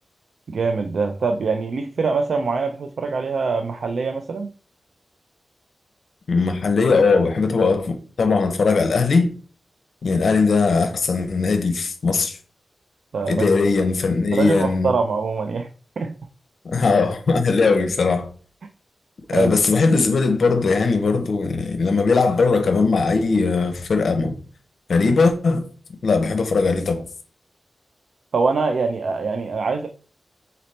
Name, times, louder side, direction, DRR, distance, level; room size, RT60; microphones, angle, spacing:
voice 1, 0.5-4.5 13.1-13.5 14.3-15.7 16.0-16.1 19.3-19.5 28.3-29.9, right 4 dB, 70° right, 0.4 m, -23 dB
voice 2, 6.3-9.3 10.0-12.4 13.3-14.9 16.7-18.3 19.3-24.3 24.9-25.7 26.0-27.0, left 4 dB, 70° left, 0.6 m, -19 dB
4.1 x 4.0 x 3.2 m
wide cardioid pair, 120°, 0 cm